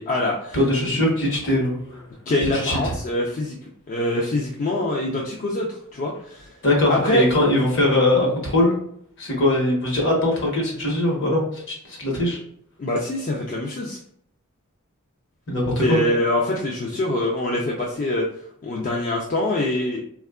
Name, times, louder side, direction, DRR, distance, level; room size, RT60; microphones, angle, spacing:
voice 1, 0.0-0.6 2.3-3.6 3.9-6.5 6.9-7.2 12.8-14.0 15.8-18.2 18.6-20.0, left 1 dB, 35° left, -2 dB, 0.4 m, -24 dB
voice 2, 0.5-2.0 2.5-2.9 6.6-8.8 9.2-12.4 15.5-16.0, left 1 dB, 55° left, -1 dB, 1.0 m, -21 dB
3.5 x 2.3 x 2.3 m, 0.68 s
head